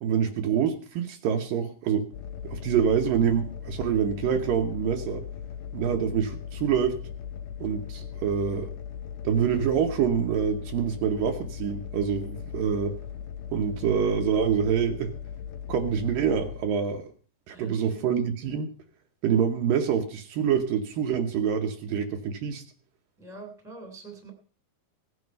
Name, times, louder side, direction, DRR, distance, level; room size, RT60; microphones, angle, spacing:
voice 1, 0.0-2.1 2.4-5.2 5.7-7.0 7.6-8.7 9.2-12.9 13.5-15.1 15.7-17.1 17.5-18.7 19.2-22.6, right 7 dB, 70° right, 4 dB, 2.6 m, -26 dB
sound 1, 2.1-16.6, left 8 dB, 90° left, 3.1 m, -38 dB
voice 2, 17.5-18.1 23.2-24.3, right 3 dB, ahead, 4 dB, 2.3 m, -44 dB
17.5 x 9.6 x 5.4 m, 0.41 s
omnidirectional pair, 4.4 m